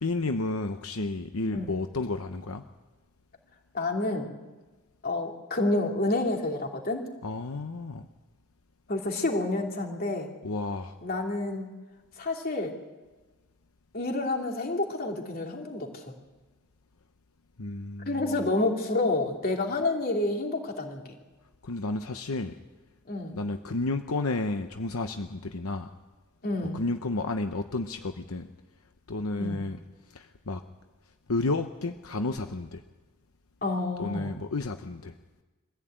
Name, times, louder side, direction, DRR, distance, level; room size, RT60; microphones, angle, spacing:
voice 1, 0.0-2.6 7.2-8.1 10.4-11.0 17.6-18.3 21.6-22.6 23.3-25.9 26.7-28.5 29.1-29.8 30.1-30.6 31.3-32.8 34.0-35.1, left 2 dB, 80° left, 7 dB, 0.9 m, -31 dB
voice 2, 3.7-4.4 5.0-7.1 8.9-10.3 11.0-11.7 12.2-12.8 13.9-16.1 18.1-21.0 23.1-23.4 26.4-26.8 29.4-29.6 33.6-34.3, left 2 dB, 45° left, 1 dB, 3.0 m, -29 dB
23.5 x 15.0 x 8.9 m, 1.2 s
head